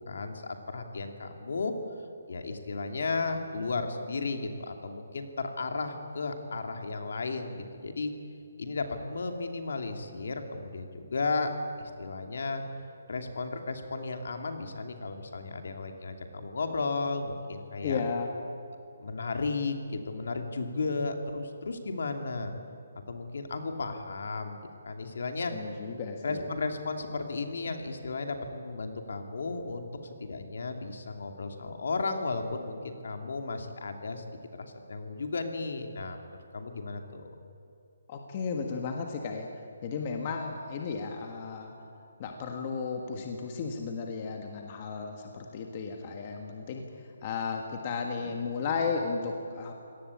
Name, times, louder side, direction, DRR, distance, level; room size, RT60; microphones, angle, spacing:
voice 1, 0.1-1.7 2.3-8.1 8.6-11.5 11.8-12.6 13.1-18.0 19.0-19.7 20.1-22.5 23.1-25.5 26.2-34.2 34.5-36.2 36.5-37.3, left 3 dB, 60° left, 5 dB, 2.8 m, -34 dB
voice 2, 17.8-18.3 25.5-26.5 38.1-39.5 39.8-41.7 42.2-46.8 47.2-49.7, left 5 dB, 25° left, 3 dB, 1.5 m, -34 dB
25.0 x 18.0 x 8.6 m, 2.6 s
hypercardioid pair, 175°, 0 cm